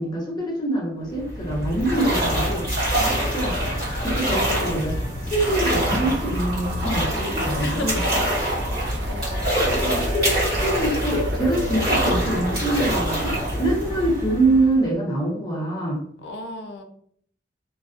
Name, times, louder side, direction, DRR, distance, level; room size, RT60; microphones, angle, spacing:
voice 1, 0.0-3.7 4.0-5.0 5.2-8.0 9.3-16.0, right 1 dB, 20° left, -3 dB, 0.7 m, -25 dB
sound 1, 1.1-14.9, equal, 45° right, 1.4 m, -25 dB
sound 2, 1.8-14.7, right 1 dB, 15° right, 0.7 m, -43 dB
voice 2, 2.4-2.7 7.6-8.1 8.5-9.3 16.2-16.8, left 2 dB, 65° left, 5 dB, 0.4 m, -35 dB
sound 3, 5.4-14.0, right 1 dB, 65° right, 0.4 m, -33 dB
2.3 x 2.3 x 2.4 m, 0.63 s
head